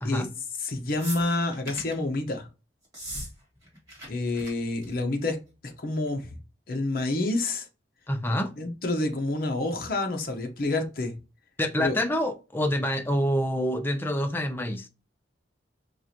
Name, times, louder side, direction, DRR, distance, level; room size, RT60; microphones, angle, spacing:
voice 1, 0.6-2.5 4.1-5.4 5.6-6.3 6.7-7.7 8.6-11.1 11.8-12.0, left 2 dB, 50° left, 0.7 m, -28 dB
sound 1, 1.0-2.0 2.8-3.3 3.6-4.1 4.3-4.5 4.8-5.1 6.1-6.2, right 1 dB, 20° right, 1.5 m, -38 dB
voice 2, 8.1-8.5 11.6-14.9, equal, 10° left, 0.4 m, -27 dB
4.6 x 2.4 x 2.7 m
head